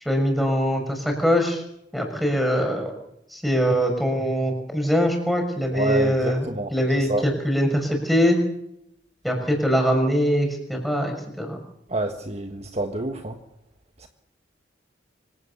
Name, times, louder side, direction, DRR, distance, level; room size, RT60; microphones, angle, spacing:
voice 1, 0.0-1.6 1.9-2.9 3.3-8.4 9.2-11.6, equal, ahead, 2 dB, 6.2 m, -22 dB
voice 2, 5.7-6.7 7.1-7.2 11.9-13.4 14.0-14.1, right 1 dB, 35° right, 5 dB, 1.5 m, -28 dB
25.5 x 17.0 x 7.0 m, 0.80 s
head